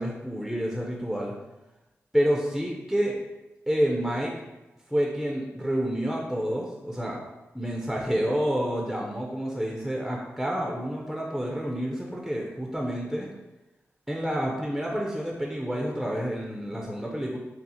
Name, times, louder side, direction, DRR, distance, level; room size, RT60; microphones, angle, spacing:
voice 1, 0.0-1.3 2.1-3.2 3.7-4.3 4.9-7.3 7.5-13.3 14.1-17.4, equal, ahead, -1 dB, 0.5 m, -28 dB
5.5 x 2.0 x 2.8 m, 1.0 s
cardioid pair, 75°, 5 cm